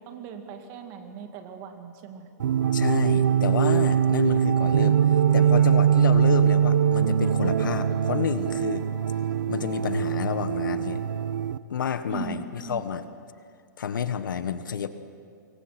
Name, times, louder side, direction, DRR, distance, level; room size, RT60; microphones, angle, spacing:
voice 1, 0.0-2.3 12.1-12.8, right 7 dB, 35° right, 5 dB, 2.3 m, -39 dB
sound 1, 2.4-11.6, right 8 dB, 75° right, 0.8 m, -22 dB
voice 2, 2.7-5.0 5.3-8.9 9.5-11.0 11.7-13.0 13.8-14.9, left 7 dB, 85° left, 11 dB, 1.3 m, -29 dB
25.5 x 23.0 x 6.0 m, 2.2 s
hypercardioid pair, 155°, 10 cm